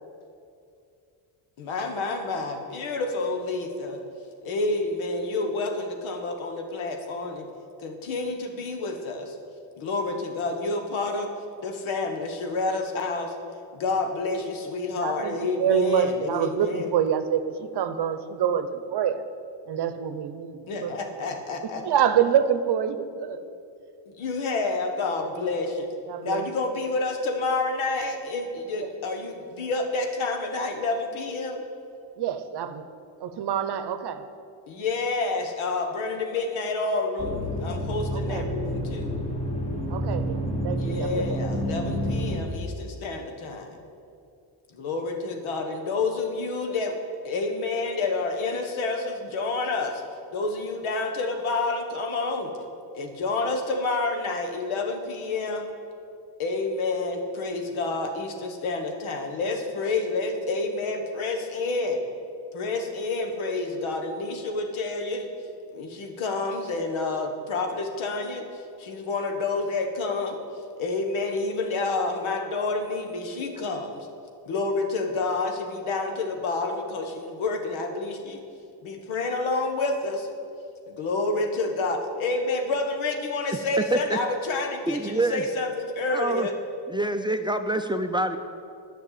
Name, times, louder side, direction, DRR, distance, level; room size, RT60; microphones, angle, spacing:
voice 1, 1.6-4.0 4.4-7.5 7.8-9.4 9.8-11.3 11.6-13.3 13.7-16.9 20.7-21.8 24.1-25.9 26.2-31.6 34.7-39.2 40.7-43.7 44.7-47.0 47.2-50.0 50.3-52.5 52.9-55.7 56.4-62.0 62.5-65.3 65.7-70.4 70.8-74.1 74.5-78.4 78.8-80.3 80.9-86.5, left 3 dB, 85° left, 4 dB, 1.5 m, -29 dB
voice 2, 15.0-19.2 19.7-20.9 21.6-23.4 25.3-25.5 26.1-26.5 28.8-28.9 32.2-32.8 33.2-34.2 38.1-38.5 39.9-41.3, right 8 dB, 55° right, 11 dB, 0.8 m, -26 dB
sound 1, 37.2-42.4, equal, 15° left, 1.3 m, -29 dB
voice 3, 84.9-85.4 86.1-86.5 86.9-88.4, right 2 dB, 10° right, 7 dB, 0.4 m, -26 dB
10.0 x 6.0 x 8.6 m, 2.4 s
cardioid pair, 95°, 47 cm